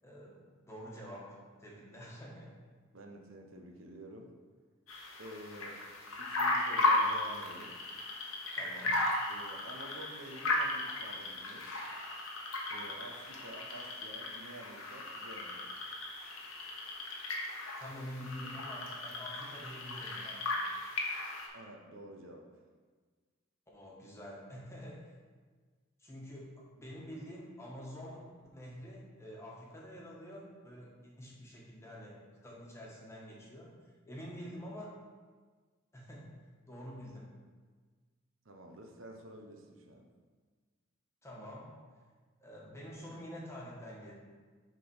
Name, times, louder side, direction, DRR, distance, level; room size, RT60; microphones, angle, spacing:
voice 1, 0.0-2.5 8.6-9.0 17.8-20.5 23.7-25.1 26.0-33.7 34.0-34.9 35.9-36.3 36.7-37.3 41.2-41.7 42.4-44.1, equal, 15° left, -4 dB, 1.4 m, -47 dB
voice 2, 2.9-4.3 5.2-5.8 6.2-7.8 9.3-11.7 12.7-15.8 21.5-22.5 38.4-40.1, right 1 dB, 70° right, 2 dB, 0.9 m, -50 dB
sound 1, 4.9-21.5, left 2 dB, 90° left, 1.2 m, -36 dB
7.2 x 3.9 x 5.5 m, 1.5 s
head